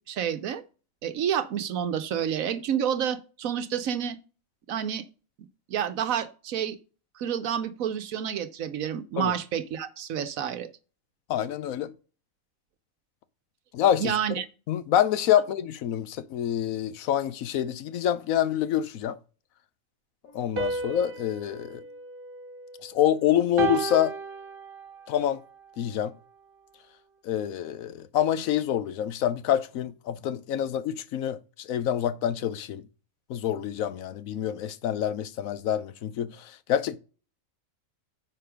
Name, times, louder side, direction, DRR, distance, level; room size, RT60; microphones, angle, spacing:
voice 1, 0.1-0.6 1.0-4.2 4.7-5.0 5.7-6.8 7.2-10.7 14.0-14.5, right 9 dB, 85° right, 1.3 m, -29 dB
voice 2, 11.3-11.9 13.7-14.2 14.7-19.2 20.3-21.8 22.8-24.1 25.1-25.4 25.8-26.1 27.2-32.8 33.3-37.0, left 10 dB, 90° left, 1.1 m, -26 dB
sound 1, 20.6-23.0 23.6-25.1, right 4 dB, 45° right, 1.1 m, -34 dB
9.5 x 4.3 x 5.0 m
omnidirectional pair, 1.4 m